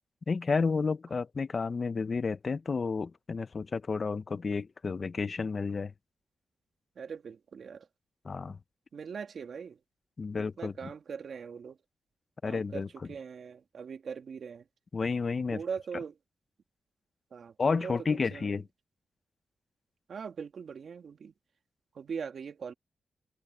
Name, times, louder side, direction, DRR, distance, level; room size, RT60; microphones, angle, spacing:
voice 1, 0.3-5.9 8.2-8.6 10.2-10.7 12.4-12.9 14.9-15.6 17.6-18.6, left 4 dB, 45° left, 0.8 m, -31 dB
voice 2, 7.0-7.9 8.9-9.8 10.6-11.8 12.4-14.7 15.5-16.2 17.3-18.6 20.1-21.3 21.9-22.7, right 6 dB, 70° right, 2.6 m, -41 dB
cardioid pair, 75°, 0 cm